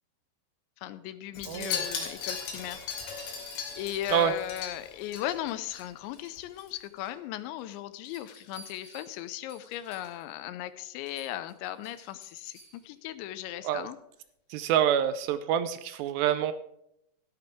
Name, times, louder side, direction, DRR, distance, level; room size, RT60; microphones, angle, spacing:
voice 1, 0.8-14.0, left 13 dB, 85° left, 14 dB, 2.9 m, -37 dB
Wind chime, 1.3-5.8 6.1-6.4 6.7-6.8, left 6 dB, 65° left, 4.6 m, -37 dB
voice 2, 1.5-1.8 4.1-4.3 13.6-13.9 14.5-16.5, right 10 dB, 80° right, 11 dB, 2.6 m, -26 dB
Rabbit Jingle Decor, 3.1-4.8 5.1-5.5 5.8-7.2 7.6-10.3 10.7-10.8 11.0-12.9 14.6-14.7, equal, 45° left, 7.4 m, -55 dB
13.5 x 11.5 x 3.6 m, 0.78 s
omnidirectional pair, 5.2 m